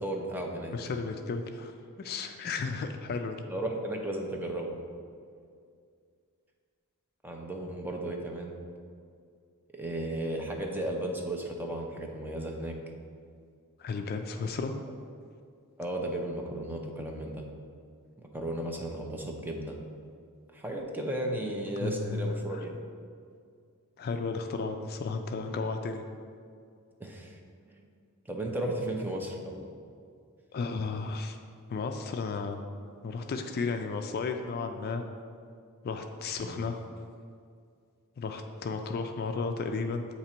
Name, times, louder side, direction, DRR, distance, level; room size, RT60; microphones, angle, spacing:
voice 1, 0.0-0.7 3.5-4.8 7.2-8.6 9.7-12.8 15.8-17.5 18.2-19.8 20.5-22.7 27.0-27.4 27.6-27.8 28.3-29.7 36.4-36.6, right 1 dB, 10° right, 1 dB, 0.5 m, -34 dB
voice 2, 0.7-3.4 13.8-14.8 21.8-22.6 24.0-26.0 30.5-31.4 31.7-32.6 33.0-35.0 35.8-36.8 38.2-40.1, left 4 dB, 45° left, 5 dB, 0.3 m, -33 dB
8.2 x 2.9 x 4.3 m, 2.3 s
head